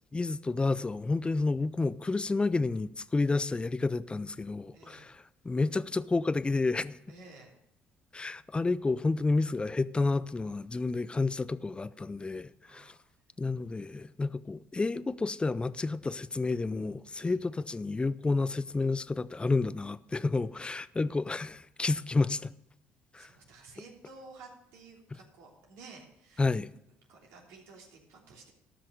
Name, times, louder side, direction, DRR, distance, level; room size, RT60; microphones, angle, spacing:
voice 1, 0.1-7.0 8.1-12.9 13.4-22.5 23.1-23.3 26.4-26.7, left 3 dB, 20° left, 0.6 m, -30 dB
voice 2, 4.7-5.1 7.1-7.5 12.6-13.0 17.2-17.4 23.1-26.5 27.1-28.5, right 3 dB, 75° right, 3.2 m, -53 dB
13.5 x 6.0 x 6.5 m
supercardioid pair, 70°, 5 cm